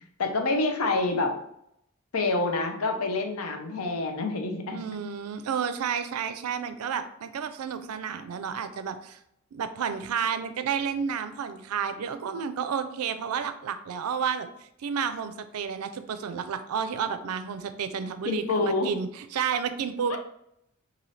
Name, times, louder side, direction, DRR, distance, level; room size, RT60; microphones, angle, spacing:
voice 1, 0.2-1.3 2.1-4.8 18.2-18.9 20.1-20.2, left 3 dB, 75° left, 4 dB, 0.6 m, -27 dB
voice 2, 4.7-9.2 9.5-14.5 14.8-20.2, right 7 dB, 85° right, 10 dB, 0.4 m, -31 dB
3.2 x 2.6 x 4.0 m, 0.75 s
head